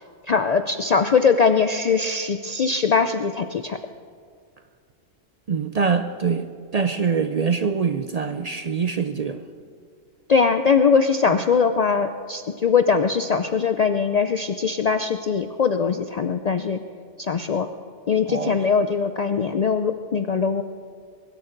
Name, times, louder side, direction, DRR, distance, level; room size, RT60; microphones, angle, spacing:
voice 1, 0.3-3.8 10.3-16.8 17.2-17.7 18.1-20.6, left 5 dB, 80° left, 9 dB, 0.3 m, -21 dB
voice 2, 5.5-6.5 6.7-9.5 11.3-11.4 18.3-18.6, right 5 dB, 60° right, 9 dB, 0.4 m, -24 dB
22.5 x 12.5 x 3.9 m, 2.2 s
omnidirectional pair, 1.3 m